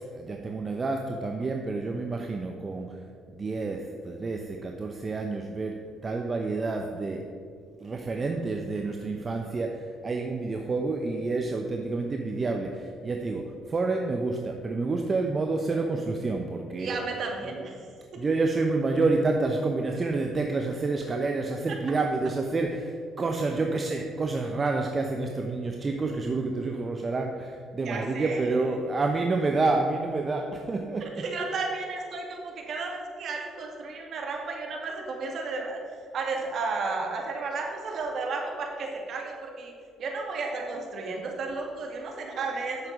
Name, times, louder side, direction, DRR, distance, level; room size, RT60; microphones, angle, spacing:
voice 1, 0.1-3.0 3.3-7.2 7.8-17.0 18.2-31.2, right 3 dB, 35° right, 3 dB, 0.9 m, -29 dB
voice 2, 16.8-18.2 27.8-28.8 31.0-35.8 36.1-39.7 40.0-42.9, right 3 dB, 55° right, 1 dB, 2.1 m, -33 dB
9.8 x 7.2 x 5.2 m, 2.3 s
hypercardioid pair, 55°, 0 cm